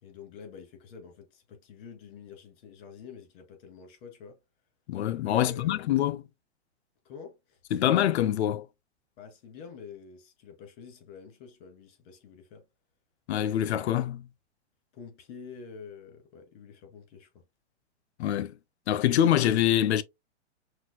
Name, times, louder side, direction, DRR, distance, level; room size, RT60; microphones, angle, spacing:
voice 1, 0.0-4.4 5.3-6.0 7.0-7.6 9.2-12.7 14.9-17.4, left 6 dB, 45° left, 2.4 m, -47 dB
voice 2, 4.9-6.2 7.7-8.7 13.3-14.3 18.2-18.5 18.9-20.0, left 11 dB, 70° left, 0.6 m, -25 dB
5.8 x 2.6 x 2.3 m
hypercardioid pair, 135°, 35 cm